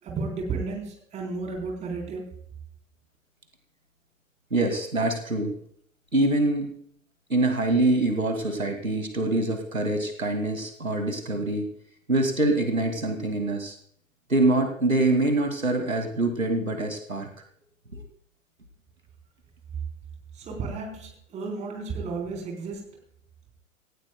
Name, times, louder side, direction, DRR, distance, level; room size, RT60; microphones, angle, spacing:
voice 1, 0.0-2.4 20.3-23.0, right 4 dB, 15° right, 1 dB, 3.9 m, -33 dB
voice 2, 4.5-5.6 6.1-6.7 7.3-11.7 12.1-13.8 14.3-17.3 17.9-18.1, right 2 dB, 80° right, 5 dB, 2.4 m, -25 dB
17.5 x 16.5 x 2.3 m, 0.64 s
figure-of-eight pair, 115°, 40 cm